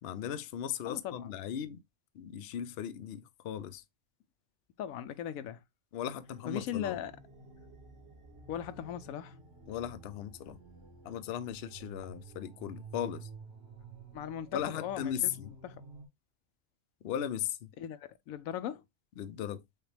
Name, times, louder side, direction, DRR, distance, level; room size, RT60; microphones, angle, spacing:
voice 1, 0.0-1.8 2.1-3.8 5.9-7.0 9.7-10.6 11.0-13.3 14.5-15.5 17.0-17.7 19.2-19.6, left 10 dB, 60° left, 0.7 m, -37 dB
voice 2, 0.8-1.3 4.8-5.6 6.5-7.1 8.5-9.4 14.1-15.3 15.6-15.8 17.8-18.8, left 10 dB, 90° left, 1.0 m, -38 dB
sound 1, 6.3-16.1, right 3 dB, 50° right, 1.7 m, -51 dB
6.6 x 2.4 x 3.2 m
omnidirectional pair, 1.4 m